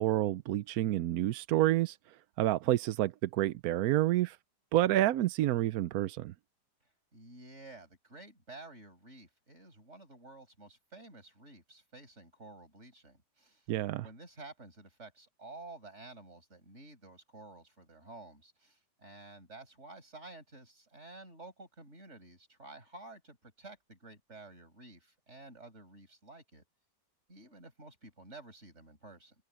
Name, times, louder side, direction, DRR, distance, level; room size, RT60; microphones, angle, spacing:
voice 1, 0.0-4.4 4.7-6.3 13.7-14.1, right 14 dB, 70° right, 0.9 m, -29 dB
voice 2, 7.1-13.7 14.0-26.6 27.3-29.3, right 2 dB, 35° right, 6.3 m, -52 dB
omnidirectional pair, 2.0 m